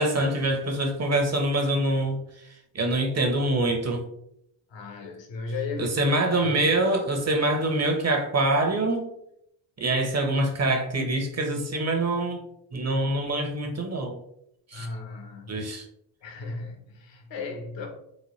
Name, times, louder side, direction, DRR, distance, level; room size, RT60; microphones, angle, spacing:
voice 1, 0.0-2.2 2.7-4.1 5.8-9.1 9.8-12.4 12.7-14.2 14.7-14.9 15.5-15.8, right 2 dB, 30° right, 4 dB, 0.9 m, -25 dB
voice 2, 4.7-6.9 14.7-15.8 16.2-17.9, left 3 dB, 60° left, 2 dB, 1.1 m, -36 dB
4.2 x 2.2 x 3.2 m, 0.74 s
supercardioid pair, 55°, 50 cm